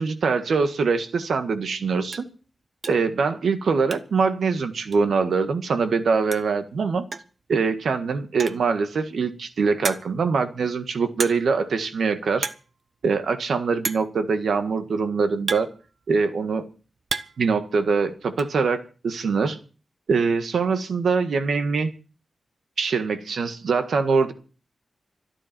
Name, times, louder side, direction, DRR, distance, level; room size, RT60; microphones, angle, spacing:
voice 1, 0.0-2.3 2.9-7.0 7.5-12.5 13.0-15.7 16.1-16.7 17.4-19.6 20.1-21.9 22.8-24.3, right 5 dB, 90° right, 9 dB, 1.7 m, -23 dB
sound 1, 1.3-1.4 1.7-1.8 2.1-2.3 2.8-3.1 3.4-4.3 4.5-4.6 4.9-5.0 6.0-6.1 6.3-6.6 7.1-7.4 8.2-8.7 9.3-9.4 9.8-10.3 11.2-11.6 11.9-12.1 12.3-12.7 13.0-13.1 13.8-14.2 15.0-16.3 16.7-17.5 17.8-18.5, right 4 dB, 50° right, 0.9 m, -32 dB
25.5 x 10.0 x 4.5 m, 0.37 s
wide cardioid pair, 150°, 0 cm